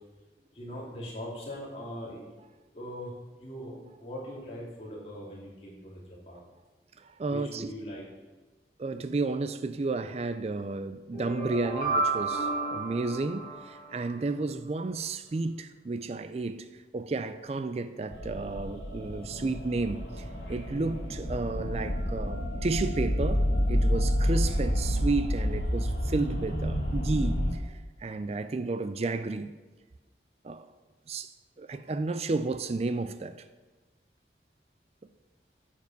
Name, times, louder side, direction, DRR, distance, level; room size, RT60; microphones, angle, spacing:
voice 1, 0.5-2.3 2.7-3.1 3.4-6.0 6.3-6.4 7.3-8.1, equal, 35° left, 3.0 m, -40 dB
voice 2, 7.0-7.7 8.8-16.7 16.9-20.2 20.5-27.6 28.0-29.5 30.4-30.7 31.1-31.3 31.6-33.4, right 3 dB, 35° right, 0.4 m, -32 dB
sound 1, 11.1-14.2, right 3 dB, 55° left, 3.3 m, -31 dB
sound 2, 18.1-27.5, equal, 80° left, 2.1 m, -29 dB
9.1 x 7.3 x 5.4 m
head